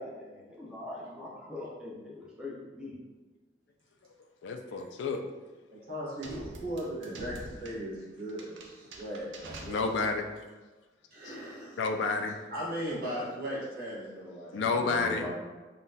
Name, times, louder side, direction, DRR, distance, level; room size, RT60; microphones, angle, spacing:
voice 1, 0.0-2.9 14.5-15.3, left 2 dB, 5° right, -5 dB, 0.5 m, -41 dB
voice 2, 4.4-5.2 9.6-10.3 11.2-11.4 11.8-12.4 14.5-15.3, left 4 dB, 80° left, 6 dB, 0.3 m, -30 dB
voice 3, 5.7-10.1 11.1-11.8 12.5-14.6, equal, 55° right, -6 dB, 1.1 m, -38 dB
sound 1, 6.2-10.3, right 2 dB, 90° right, 0.5 m, -46 dB
3.8 x 2.2 x 2.6 m, 1.3 s
head